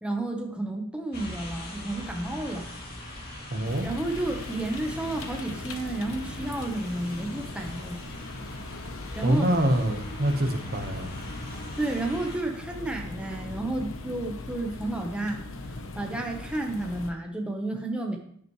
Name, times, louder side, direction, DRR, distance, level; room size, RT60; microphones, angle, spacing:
voice 1, 0.0-2.7 3.8-8.0 9.1-9.5 11.8-15.4 16.0-18.2, right 2 dB, 5° right, 1 dB, 1.1 m, -31 dB
sound 1, 1.1-12.4, left 1 dB, 45° left, 2.7 m, -41 dB
voice 2, 3.5-3.9 9.2-11.1, right 1 dB, 45° right, 5 dB, 1.2 m, -25 dB
sound 2, 3.6-17.1, left 2 dB, 65° left, 1.0 m, -40 dB
10.0 x 10.0 x 3.2 m, 0.65 s
head